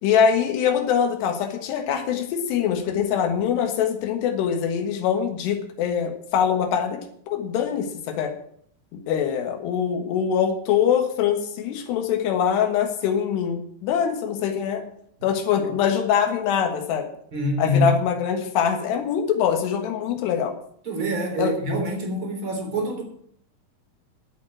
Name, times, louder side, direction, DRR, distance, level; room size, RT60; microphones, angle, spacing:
voice 1, 0.0-7.0 7.3-8.3 8.9-14.8 15.2-17.1 17.6-20.6 21.4-21.5, left 8 dB, 85° left, 5 dB, 3.7 m, -23 dB
voice 2, 17.3-18.0 20.8-23.0, equal, 30° right, 2 dB, 3.9 m, -25 dB
10.5 x 8.3 x 8.9 m, 0.65 s
omnidirectional pair, 4.7 m